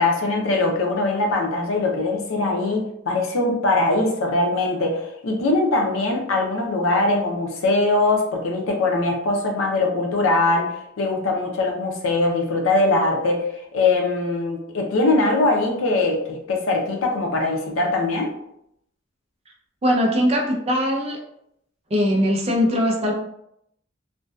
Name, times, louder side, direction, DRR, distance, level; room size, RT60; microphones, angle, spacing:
voice 1, 0.0-18.3, left 2 dB, 90° left, 1 dB, 0.5 m, -22 dB
voice 2, 19.8-21.2 21.9-23.1, equal, 30° right, 1 dB, 0.4 m, -20 dB
2.5 x 2.2 x 2.2 m, 0.77 s
head